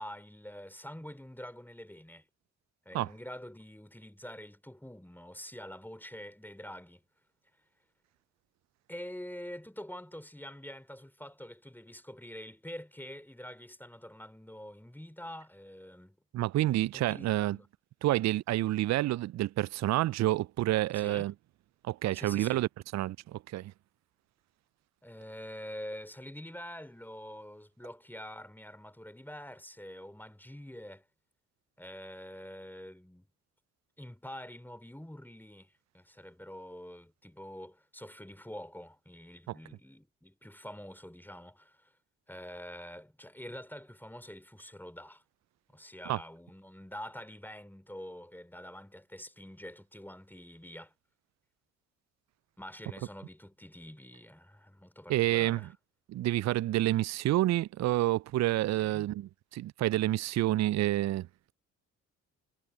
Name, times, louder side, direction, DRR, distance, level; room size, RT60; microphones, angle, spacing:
voice 1, 0.0-2.3 2.9-7.0 8.9-16.2 16.9-17.7 20.9-21.3 22.1-22.6 25.0-31.0 31.8-33.3 34.0-41.9 42.3-45.2 45.7-50.9 52.6-55.7 58.7-59.1, equal, 5° left, 3.5 m, -46 dB
voice 2, 16.3-17.6 18.0-21.3 21.8-23.7 46.1-46.2 55.1-55.7 56.1-61.3, right 15 dB, 45° right, 0.5 m, -29 dB
figure-of-eight pair, 45°, 39 cm